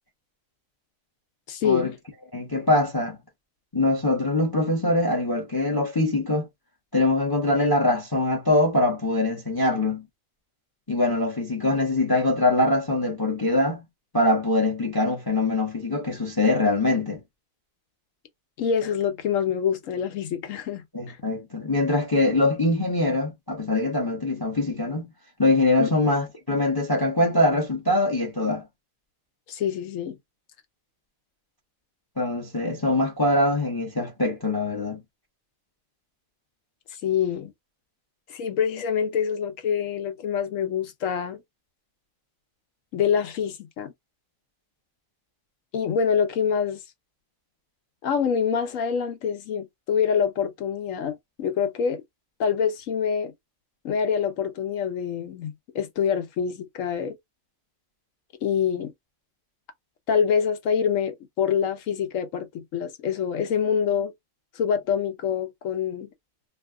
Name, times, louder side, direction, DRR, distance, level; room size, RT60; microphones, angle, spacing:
voice 1, 1.5-1.9 18.6-21.2 25.8-25.9 29.5-30.2 37.0-37.5 38.3-41.4 42.9-43.9 45.7-46.8 48.0-52.0 52.4-53.3 53.8-57.2 58.4-58.9 60.1-64.1 64.6-66.1, left 7 dB, 70° left, 1.0 m, -26 dB
voice 2, 2.3-3.2 3.7-6.5 6.9-10.0 10.9-13.9 14.1-17.2 20.9-25.1 25.4-28.7 32.2-35.0, left 2 dB, 20° left, 0.7 m, -23 dB
2.6 x 2.3 x 3.5 m
omnidirectional pair, 1.5 m